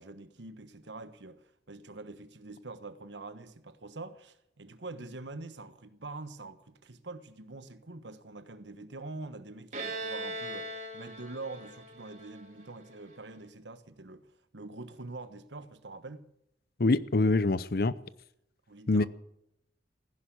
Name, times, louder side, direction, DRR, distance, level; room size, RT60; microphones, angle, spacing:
voice 1, 0.0-14.3 14.5-16.3 18.7-19.1, right 3 dB, 85° right, 1.3 m, -45 dB
Bowed string instrument, 9.7-13.3, right 2 dB, 45° right, 2.6 m, -40 dB
voice 2, 16.8-17.9 18.9-19.1, left 2 dB, 55° left, 0.7 m, -25 dB
15.5 x 11.0 x 8.5 m
head